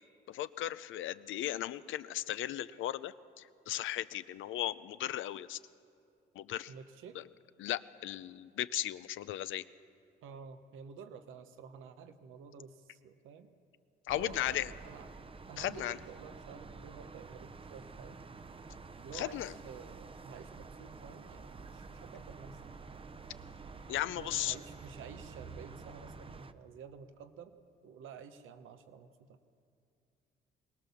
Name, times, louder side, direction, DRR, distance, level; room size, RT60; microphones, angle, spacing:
voice 1, 0.3-5.6 6.4-6.7 7.6-9.6 14.1-14.7 15.6-16.0 19.1-19.5 23.9-24.6, left 13 dB, 80° left, 14 dB, 0.6 m, -36 dB
voice 2, 6.7-7.2 10.2-13.5 14.1-15.1 15.5-18.2 19.0-22.8 24.1-27.5 27.8-29.4, right 7 dB, 90° right, 9 dB, 1.1 m, -51 dB
sound 1, 14.1-26.5, right 4 dB, 25° right, 0.7 m, -49 dB
22.0 x 19.0 x 7.0 m, 2.5 s
cardioid pair, 90°, 20 cm